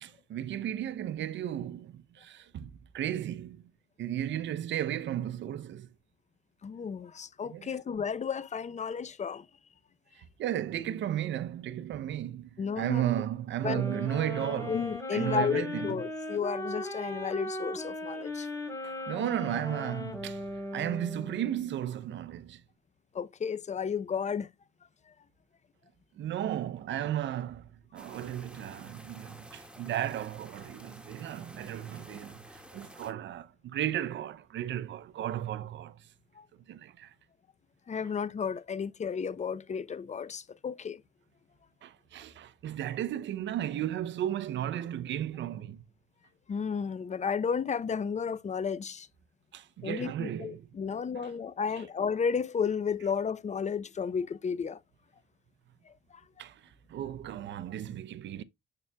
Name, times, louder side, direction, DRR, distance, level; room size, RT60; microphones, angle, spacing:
voice 1, 0.0-3.6 4.0-5.9 7.5-7.7 10.2-14.8 15.1-16.0 18.8-22.6 26.2-36.0 36.7-37.1 41.8-45.8 49.5-50.7 51.2-51.3 56.4-56.6 56.9-58.4, right 11 dB, 65° right, 0.6 m, -34 dB
voice 2, 6.6-9.5 12.6-13.1 13.6-13.8 14.7-18.5 23.1-24.5 36.4-36.5 37.9-41.0 46.5-49.1 49.8-54.8 55.9-56.2, left 6 dB, 35° left, 0.6 m, -33 dB
sound 1, 13.6-21.6, left 1 dB, 15° left, 3.3 m, -38 dB
sound 2, 28.0-33.1, right 1 dB, 5° right, 1.7 m, -51 dB
7.0 x 6.8 x 2.2 m
cardioid pair, 90°, 20 cm